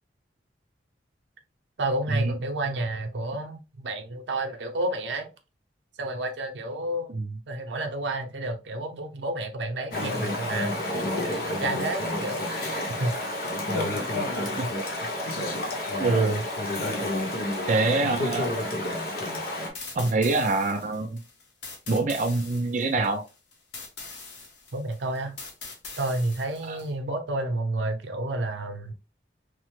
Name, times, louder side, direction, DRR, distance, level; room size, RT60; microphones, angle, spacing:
voice 1, 1.8-5.3 6.0-7.1 7.5-10.8 11.3-13.1 24.7-25.4 26.0-28.9, right 2 dB, 90° right, 0.6 m, -30 dB
Chatter / Stream, 9.9-19.7, left 1 dB, 55° left, 0.8 m, -29 dB
voice 2, 16.0-16.4 17.7-18.5 19.9-21.2 21.9-23.2 26.7-26.8, right 3 dB, 45° right, 0.4 m, -25 dB
sound 1, 19.7-26.9, left 4 dB, 85° left, 0.9 m, -42 dB
3.2 x 2.1 x 3.1 m
head